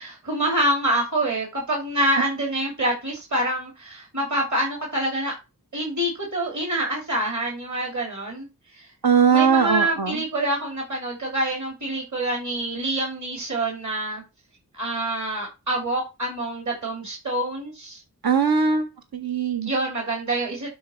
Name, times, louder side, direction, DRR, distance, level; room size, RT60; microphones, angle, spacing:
voice 1, 0.0-5.3 5.7-8.5 8.7-8.9 9.3-14.2 14.7-18.0 19.7-20.7, right 1 dB, 50° right, -1 dB, 2.9 m, -26 dB
voice 2, 9.0-10.2 18.2-18.9 19.1-19.7, right 6 dB, 70° right, 6 dB, 1.1 m, -20 dB
11.5 x 4.0 x 4.5 m, 0.27 s
wide cardioid pair, 40°, 37 cm